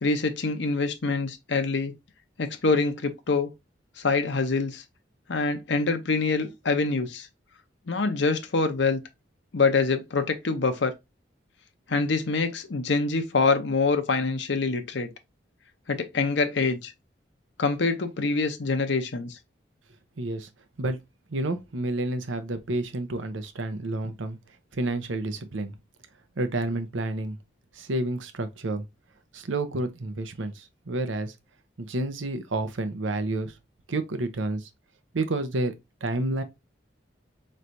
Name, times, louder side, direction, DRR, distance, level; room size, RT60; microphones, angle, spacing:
voice 1, 0.0-1.9 2.4-3.5 4.0-4.8 5.3-7.3 7.9-9.0 9.5-10.9 11.9-15.1 15.9-16.9 17.6-19.4, left 4 dB, 70° left, 0.7 m, -25 dB
voice 2, 20.2-20.5 20.8-21.0 21.3-24.4 24.7-25.7 26.4-27.4 27.7-28.8 29.3-31.3 31.8-33.5 33.9-34.7 35.1-35.7 36.0-36.4, right 2 dB, 85° right, 0.8 m, -29 dB
4.4 x 3.2 x 2.6 m
head